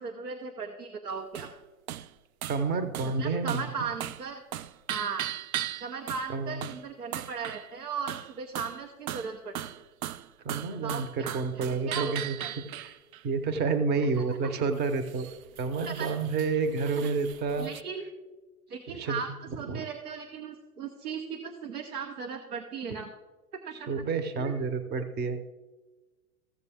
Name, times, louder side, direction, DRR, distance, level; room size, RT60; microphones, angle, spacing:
voice 1, 0.0-1.5 3.0-4.4 4.9-5.3 5.8-9.6 10.7-12.5 14.1-14.8 15.8-16.1 17.0-17.1 17.6-18.1 18.7-19.3 19.6-23.1 23.5-24.0 24.4-24.7, right 6 dB, 85° right, 4 dB, 1.0 m, -37 dB
sound 1, 1.4-1.6 1.9-2.1 2.4-2.6 2.9-3.2 3.5-3.7 4.0-4.3 4.5-6.3 6.6-6.8 7.1-7.7 8.1-8.8 9.1-13.2 14.8-17.8, right 12 dB, 70° right, 0.5 m, -38 dB
voice 2, 2.5-3.6 6.3-6.6 10.4-13.0 13.2-15.3 15.6-17.7 18.9-19.2 19.7-19.8 23.9-25.4, right 4 dB, 25° right, 10 dB, 0.7 m, -29 dB
15.0 x 6.7 x 3.5 m, 1.2 s
hypercardioid pair, 105°, 44 cm